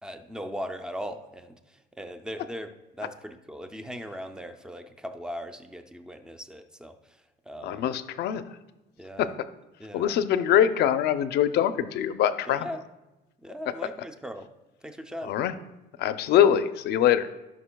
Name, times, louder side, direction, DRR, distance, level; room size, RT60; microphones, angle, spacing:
voice 1, 0.0-7.9 9.0-9.3 9.8-10.2 12.5-12.8 13.4-14.5 14.8-15.4, equal, 5° right, 7 dB, 0.4 m, -39 dB
voice 2, 7.6-8.4 9.2-9.3 9.9-12.7 15.2-15.5 16.0-17.3, left 10 dB, 65° left, 11 dB, 0.5 m, -23 dB
16.0 x 5.8 x 2.3 m, 1.0 s
cardioid pair, 160°, 19 cm